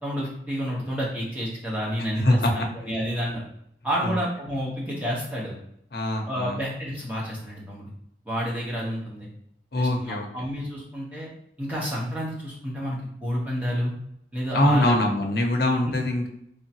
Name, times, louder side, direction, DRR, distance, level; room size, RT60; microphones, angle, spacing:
voice 1, 0.0-3.4 3.8-5.5 6.3-7.8 8.2-9.3 9.8-11.3 11.6-13.9 14.3-14.9 15.8-15.9, equal, 10° right, -5 dB, 1.0 m, -30 dB
voice 2, 2.2-2.7 4.0-4.2 5.9-6.6 9.7-10.3 14.5-16.3, left 1 dB, 60° left, 3 dB, 0.7 m, -23 dB
3.6 x 3.4 x 2.9 m, 0.73 s
head